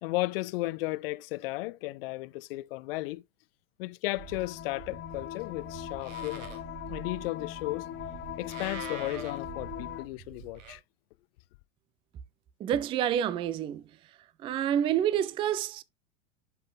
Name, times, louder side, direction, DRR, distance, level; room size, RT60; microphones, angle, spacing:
voice 1, 0.0-3.2 3.8-6.5 6.9-7.9 8.4-10.8, left 20 dB, 45° left, 0.5 m, -34 dB
Livestock farm animals working animals, 4.1-10.8, right 6 dB, 65° right, 2.4 m, -45 dB
sound 1, 4.2-10.0, left 12 dB, 30° left, 1.2 m, -40 dB
voice 2, 12.6-13.8 14.4-15.8, right 10 dB, 15° right, 0.3 m, -28 dB
11.5 x 5.6 x 2.2 m
figure-of-eight pair, 85°, 41 cm